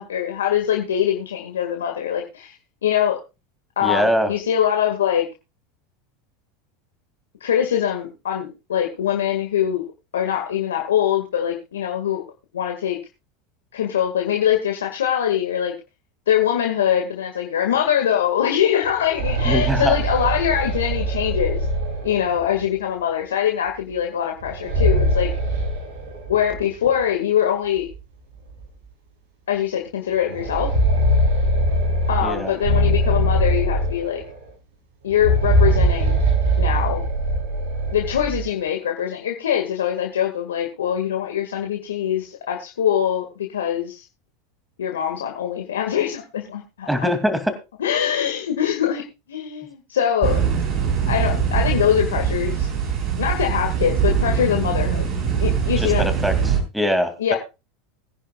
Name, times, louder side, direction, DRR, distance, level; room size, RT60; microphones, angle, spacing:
voice 1, 0.0-2.5 2.8-3.2 3.8-5.3 7.4-9.9 10.1-12.2 12.5-13.0 13.7-15.7 16.3-21.6 22.0-25.3 26.3-27.9 29.5-30.7 32.1-34.2 35.0-36.2 36.6-37.0 37.9-44.0 44.8-47.1 47.8-49.0 49.3-50.4 51.1-52.7 53.2-55.1 55.4-56.1 57.2-57.4, left 9 dB, 80° left, 2 dB, 2.0 m, -23 dB
voice 2, 3.8-4.3 19.4-20.0 32.2-32.5 46.9-47.6 55.8-57.4, equal, 5° right, 8 dB, 2.6 m, -23 dB
sound 1, 18.8-22.6 24.4-26.6 26.9-27.0 27.9-28.0 28.5-28.6 30.2-34.4 35.1-38.5, right 1 dB, 75° right, 7.8 m, -21 dB
sound 2, 50.2-56.6, right 7 dB, 45° right, 6.5 m, -22 dB
21.5 x 10.5 x 2.4 m, 0.28 s
hypercardioid pair, 90°, 0 cm